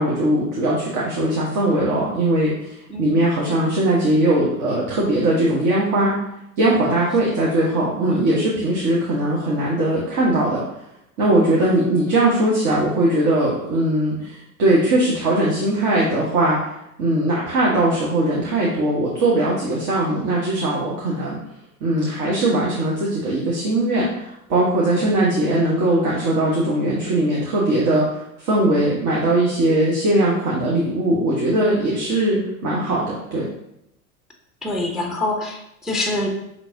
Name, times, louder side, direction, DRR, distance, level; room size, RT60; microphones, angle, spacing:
voice 1, 0.0-6.2 6.6-10.6 11.2-21.4 21.8-33.5, right 1 dB, 40° right, -5 dB, 1.2 m, -20 dB
voice 2, 34.6-36.3, left 1 dB, ahead, 1 dB, 0.5 m, -25 dB
5.8 x 3.1 x 2.7 m, 0.81 s
hypercardioid pair, 95°, 44 cm